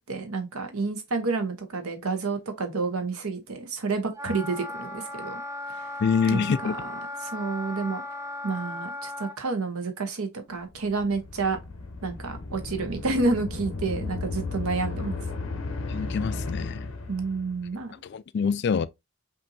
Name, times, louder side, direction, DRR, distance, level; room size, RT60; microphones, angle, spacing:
voice 1, 0.1-5.4 5.7-5.9 6.3-8.0 8.4-11.6 12.0-15.2 17.1-18.0, right 3 dB, 85° right, 1.0 m, -29 dB
Wind instrument woodwind instrument, 4.1-9.4, left 2 dB, 15° right, 0.5 m, -36 dB
voice 2, 6.0-6.7 15.9-16.9 18.0-18.9, left 6 dB, 50° left, 0.3 m, -26 dB
sound 1, 10.7-17.7, left 3 dB, 65° left, 0.8 m, -34 dB
5.4 x 2.7 x 2.7 m
head